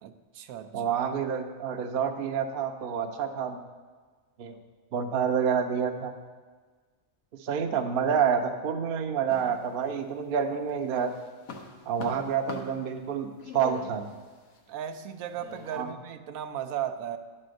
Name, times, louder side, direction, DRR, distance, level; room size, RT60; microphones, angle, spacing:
voice 1, 0.0-0.9 14.7-17.2, right 9 dB, 85° right, 8 dB, 1.0 m, -36 dB
voice 2, 0.7-3.6 4.4-4.5 4.9-6.1 7.4-11.1 11.9-14.1 15.7-15.9, right 7 dB, 50° right, 6 dB, 0.7 m, -28 dB
sound 1, 9.3-10.3 10.7-15.8, left 4 dB, 85° left, 1.4 m, -44 dB
9.9 x 4.2 x 6.3 m, 1.4 s
omnidirectional pair, 1.4 m